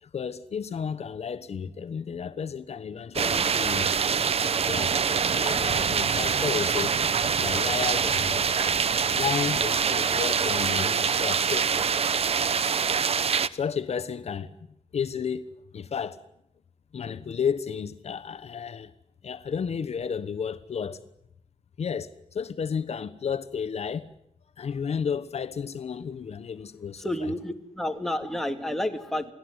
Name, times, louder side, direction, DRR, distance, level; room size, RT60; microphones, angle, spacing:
voice 1, 0.0-3.9 4.6-4.9 5.4-6.9 7.3-8.8 9.1-11.7 12.6-12.7 13.5-14.5 14.9-15.5 15.7-16.2 16.9-18.9 19.2-21.0 21.8-24.1 24.6-27.1, left 6 dB, 60° left, 1.1 m, -32 dB
sound 1, 3.1-13.5, right 6 dB, 55° right, 1.0 m, -25 dB
voice 2, 27.0-29.3, left 1 dB, 5° left, 2.4 m, -30 dB
28.5 x 18.5 x 9.7 m
wide cardioid pair, 145°, 12 cm